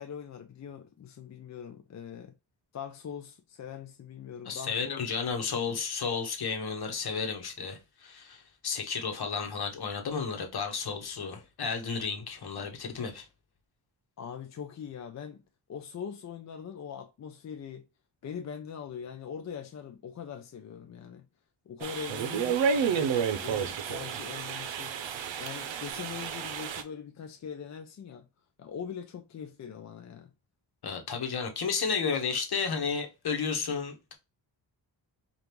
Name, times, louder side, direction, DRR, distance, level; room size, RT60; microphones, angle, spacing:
voice 1, 0.0-2.3 2.7-5.0 5.3-5.8 14.2-15.4 15.7-17.9 18.2-21.3 21.7-25.0 25.4-28.3 28.6-30.3, left 7 dB, 40° left, 0.4 m, -42 dB
voice 2, 4.4-13.3 30.8-34.1, left 5 dB, 60° left, 1.0 m, -32 dB
sound 1, 21.8-26.8, right 7 dB, 85° right, 0.7 m, -31 dB
5.1 x 2.4 x 3.0 m
wide cardioid pair, 130°, 44 cm